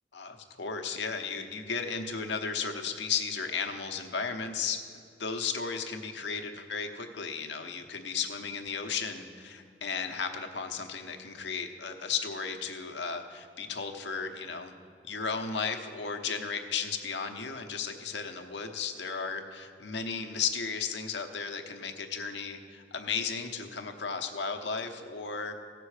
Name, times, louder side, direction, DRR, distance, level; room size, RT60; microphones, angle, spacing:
voice 1, 0.1-14.7 15.0-25.5, left 5 dB, 70° left, 5 dB, 0.9 m, -35 dB
16.0 x 6.9 x 4.9 m, 2.3 s
head